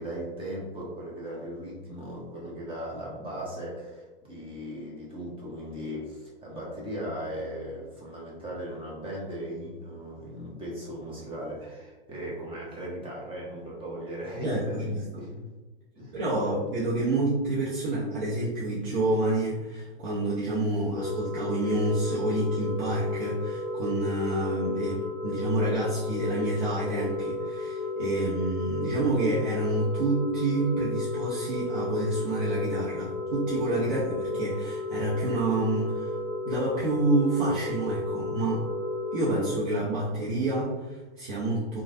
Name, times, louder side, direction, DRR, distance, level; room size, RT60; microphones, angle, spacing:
voice 1, 0.0-15.5 16.0-16.2 33.8-33.9, equal, 20° right, -5 dB, 0.9 m, -38 dB
voice 2, 14.4-15.2 16.1-36.1 36.4-38.7 39.1-41.8, right 2 dB, 55° right, -7 dB, 0.8 m, -28 dB
sound 1, 20.9-39.6, left 2 dB, 15° left, 0.8 m, -33 dB
3.1 x 2.4 x 2.6 m, 1.2 s
hypercardioid pair, 105°, 30 cm